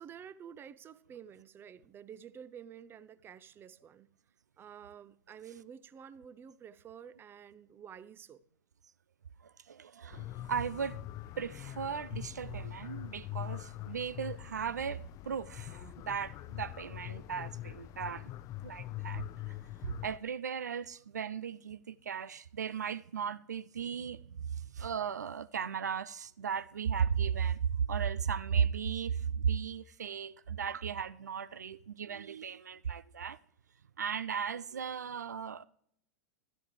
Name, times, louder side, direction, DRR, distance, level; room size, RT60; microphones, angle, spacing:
voice 1, 0.0-4.1 4.6-8.4 16.0-16.1 16.7-17.3, right 8 dB, 25° right, 0.6 m, -51 dB
voice 2, 9.4-11.0 11.4-18.3 18.6-19.6 19.8-33.4 34.0-35.7, right 7 dB, 80° right, 0.4 m, -36 dB
sound 1, 10.1-20.2, left 14 dB, 35° left, 0.6 m, -43 dB
15.5 x 13.0 x 3.2 m
figure-of-eight pair, 95°, 9 cm